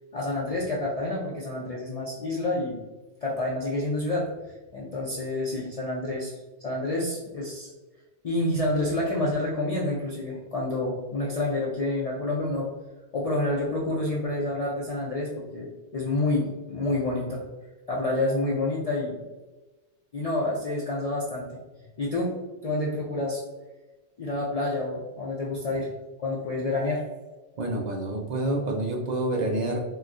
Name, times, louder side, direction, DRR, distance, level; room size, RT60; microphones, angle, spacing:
voice 1, 0.1-2.8 3.2-4.3 4.7-6.3 6.6-7.7 8.2-12.7 13.1-17.4 17.9-19.2 20.1-21.6 22.0-22.3 22.6-23.4 24.2-25.9 26.2-27.0, left 2 dB, 60° left, -4 dB, 0.4 m, -28 dB
voice 2, 27.6-29.8, right 1 dB, 60° right, 0 dB, 0.4 m, -28 dB
3.9 x 2.2 x 2.4 m, 1.2 s
omnidirectional pair, 1.2 m